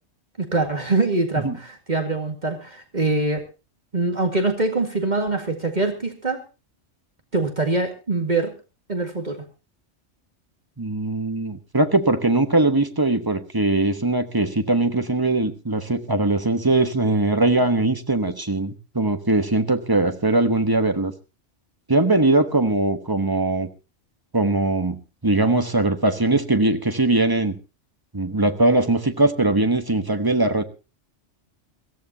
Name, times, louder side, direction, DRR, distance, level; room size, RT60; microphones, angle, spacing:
voice 1, 0.4-3.4 3.9-6.4 7.3-8.5 8.9-9.4, right 3 dB, 35° right, 4 dB, 2.1 m, -24 dB
voice 2, 10.8-21.1 21.9-23.7 24.3-25.0 25.2-27.6 28.1-30.6, right 2 dB, 20° right, 8 dB, 1.2 m, -21 dB
22.0 x 15.0 x 2.8 m, 0.30 s
omnidirectional pair, 1.2 m